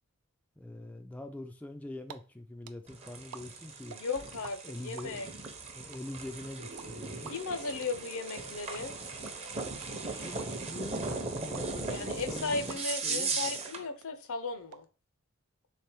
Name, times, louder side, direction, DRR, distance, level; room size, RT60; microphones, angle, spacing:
voice 1, 0.6-4.0 4.6-5.3 5.7-7.3 10.2-13.5, left 1 dB, 5° left, 0.3 m, -44 dB
sound 1, 1.8-2.2 2.4-4.5 4.8-13.1 13.4-13.5 13.7-14.8, right 8 dB, 90° right, 0.4 m, -49 dB
sound 2, 2.9-13.9, right 4 dB, 30° right, 0.7 m, -38 dB
voice 2, 3.9-5.3 7.3-8.9 11.9-14.8, left 4 dB, 65° left, 0.6 m, -36 dB
sound 3, 6.6-12.8, right 1 dB, 70° right, 0.9 m, -51 dB
3.5 x 3.3 x 4.4 m
head